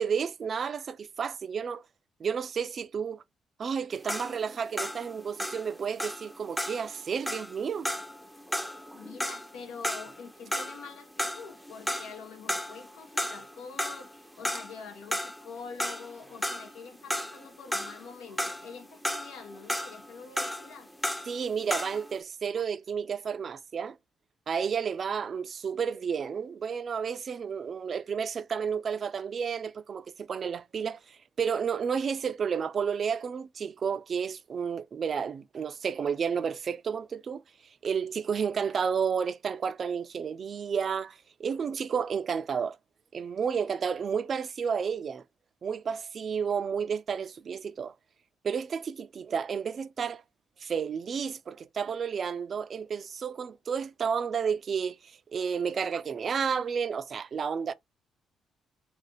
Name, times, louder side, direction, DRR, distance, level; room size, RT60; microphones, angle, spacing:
voice 1, 0.0-1.8 2.2-3.2 3.6-7.9 21.3-24.0 24.5-37.4 37.8-42.8 43.1-45.2 45.6-47.9 48.4-50.2 50.6-57.7, right 6 dB, 50° right, 0.3 m, -31 dB
sound 1, 3.9-10.9 11.2-12.2 12.5-13.5 13.8-22.1, equal, ahead, 0.5 m, -34 dB
voice 2, 8.9-20.9, left 5 dB, 90° left, 0.8 m, -46 dB
2.5 x 2.4 x 3.6 m
cardioid pair, 90°, 0 cm